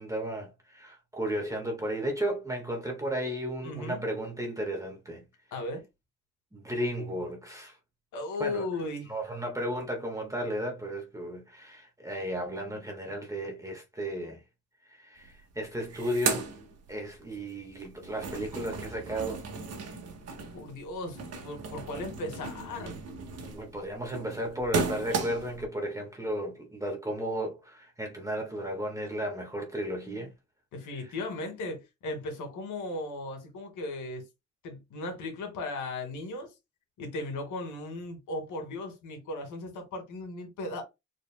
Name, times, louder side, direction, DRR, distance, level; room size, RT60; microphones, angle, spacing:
voice 1, 0.0-5.2 6.5-7.8 8.4-8.6 9.1-14.4 14.8-16.4 16.9-19.5 23.4-30.3, right 1 dB, 10° right, 1.6 m, -34 dB
voice 2, 3.6-4.0 5.5-5.8 8.1-9.1 20.5-23.0 30.7-34.2 34.6-36.5 37.0-40.8, left 2 dB, 80° left, 2.3 m, -36 dB
sound 1, 15.2-15.3 15.6-17.4 17.7-25.6, right 4 dB, 55° right, 1.6 m, -36 dB
4.9 x 4.5 x 2.2 m
cardioid pair, 90°, 30 cm